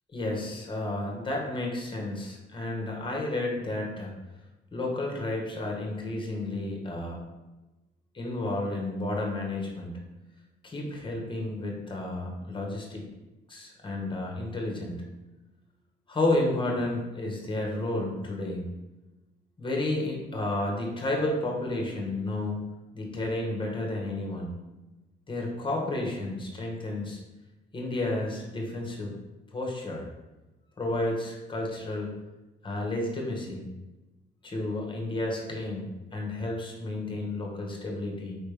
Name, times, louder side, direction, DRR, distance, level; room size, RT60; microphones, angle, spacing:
voice 1, 0.1-4.1 4.7-7.2 8.1-9.9 10.6-13.1 13.5-15.0 16.1-18.6 19.6-24.5 25.3-27.2 27.7-29.1 29.5-30.1 30.8-32.2 32.6-33.6 34.4-38.4, left 2 dB, 25° left, 0 dB, 1.2 m, -31 dB
4.7 x 3.2 x 3.4 m, 1.1 s
cardioid pair, 90°, 20 cm